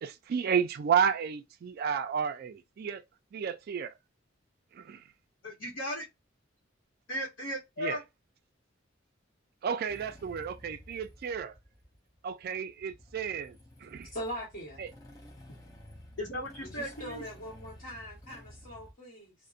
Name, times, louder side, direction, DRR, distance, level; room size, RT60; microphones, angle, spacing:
voice 1, 0.0-3.0 3.3-3.9 4.7-5.0 7.8-8.0 9.6-11.5 12.2-14.1 14.8-14.9, right 7 dB, 50° right, 0.3 m, -32 dB
voice 2, 5.4-6.0 7.1-8.0 16.2-17.2, equal, 65° left, 0.9 m, -36 dB
Motorcycle / Engine starting, 9.9-18.9, left 1 dB, 20° left, 0.6 m, -52 dB
voice 3, 14.1-14.8 16.6-19.3, equal, 50° left, 1.2 m, -41 dB
2.5 x 2.1 x 2.4 m
head